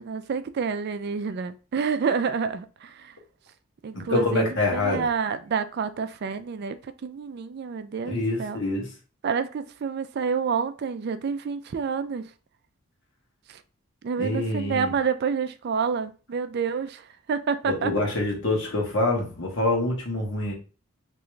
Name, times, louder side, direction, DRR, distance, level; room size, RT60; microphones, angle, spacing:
voice 1, 0.0-3.1 3.8-8.6 9.2-12.3 13.5-13.6 14.0-17.9, right 6 dB, 50° right, 0.3 m, -28 dB
voice 2, 3.9-5.1 8.0-8.9 14.2-14.9 17.6-20.5, left 2 dB, 60° left, 1.4 m, -26 dB
3.6 x 3.0 x 3.2 m
head